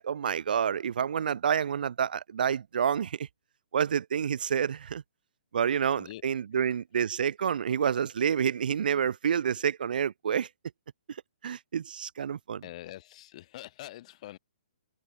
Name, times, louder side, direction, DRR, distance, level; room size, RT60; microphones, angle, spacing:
voice 1, 0.0-3.3 3.7-5.0 5.5-10.5 11.4-12.6, right 8 dB, 65° right, 0.7 m, -28 dB
voice 2, 12.6-14.4, left 15 dB, 40° left, 5.8 m, -45 dB
hypercardioid pair, 140°, 5 cm